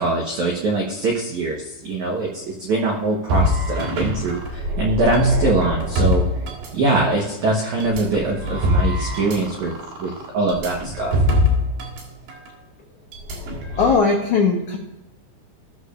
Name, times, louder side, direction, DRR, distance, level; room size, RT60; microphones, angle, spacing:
voice 1, 0.0-6.2 6.7-9.7 10.0-11.2, right 2 dB, 85° right, -1 dB, 1.6 m, -22 dB
sound 1, 3.3-7.2 7.8-12.0 12.3-12.5 13.1-14.0, left 1 dB, 65° right, 3.8 m, -23 dB
voice 2, 13.8-14.8, left 4 dB, 80° left, 0 dB, 1.7 m, -18 dB
18.0 x 6.6 x 2.5 m, 1.0 s
omnidirectional pair, 5.3 m